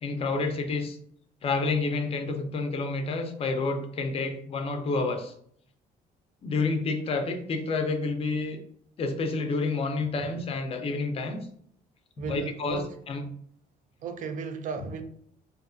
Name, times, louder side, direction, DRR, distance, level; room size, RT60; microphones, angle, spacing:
voice 1, 0.0-1.0 1.4-5.3 6.4-8.6 9.0-11.5 12.2-13.3, left 3 dB, 35° left, 0.5 m, -29 dB
voice 2, 12.2-12.9 14.0-15.0, right 5 dB, 50° right, 0.4 m, -35 dB
2.5 x 2.2 x 2.5 m
cardioid pair, 110°, 17 cm